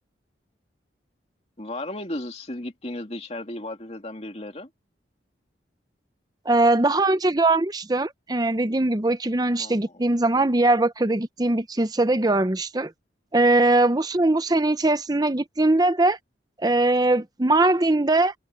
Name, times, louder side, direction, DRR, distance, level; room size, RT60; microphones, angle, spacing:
voice 1, 1.6-4.7 9.6-10.0, left 1 dB, 35° left, 2.5 m, -35 dB
voice 2, 6.5-12.9 13.3-16.2 16.6-18.3, right 2 dB, 20° right, 0.7 m, -21 dB
head